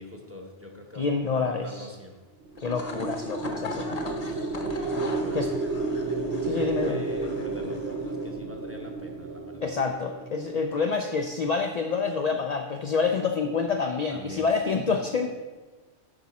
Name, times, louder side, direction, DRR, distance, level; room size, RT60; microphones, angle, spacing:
voice 1, 0.0-2.2 4.2-4.5 5.0-5.5 6.5-9.7 14.1-14.8, left 1 dB, 15° right, 2 dB, 0.8 m, -43 dB
voice 2, 1.0-1.9 2.6-4.0 5.3-5.5 6.4-7.0 9.6-15.3, left 5 dB, 65° left, 4 dB, 0.4 m, -27 dB
sound 1, 2.4-10.9, right 3 dB, 65° right, 0.9 m, -32 dB
sound 2, 2.5-8.3, left 3 dB, 35° left, 0.8 m, -40 dB
8.8 x 5.9 x 4.1 m, 1.3 s
omnidirectional pair, 1.3 m